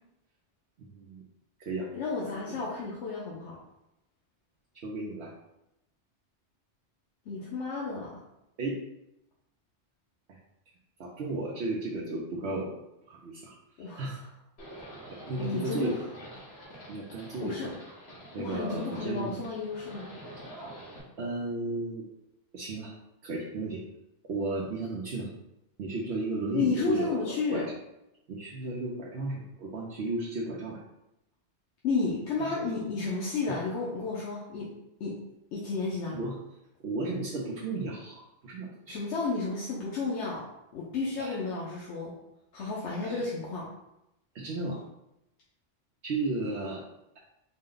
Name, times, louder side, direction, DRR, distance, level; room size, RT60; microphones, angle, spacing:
voice 1, 0.8-1.2 1.7-1.9 2.2-2.6 4.8-5.3 8.6-8.8 11.0-12.7 13.1-13.5 14.0-14.2 15.1-16.0 16.9-17.7 18.3-19.4 21.2-22.0 22.5-22.9 23.2-23.8 24.3-25.3 25.8-27.7 28.3-30.8 32.4-32.5 33.5-33.6 36.1-36.4 36.8-39.0 41.2-41.4 43.0-43.2 44.3-44.8 46.0-46.8, right 2 dB, 70° right, -4 dB, 0.9 m, -34 dB
voice 2, 1.9-3.6 7.3-8.1 13.8-14.1 15.4-16.0 17.4-17.7 18.4-20.1 26.5-27.7 31.8-34.7 35.0-35.2 35.5-36.2 38.9-40.4 40.7-42.1 42.5-43.7, left 4 dB, 85° left, -5 dB, 1.0 m, -32 dB
Livestock farm animals working animals, 14.6-21.0, equal, 65° left, 1.3 m, -47 dB
4.1 x 2.1 x 3.8 m, 0.88 s
omnidirectional pair, 1.2 m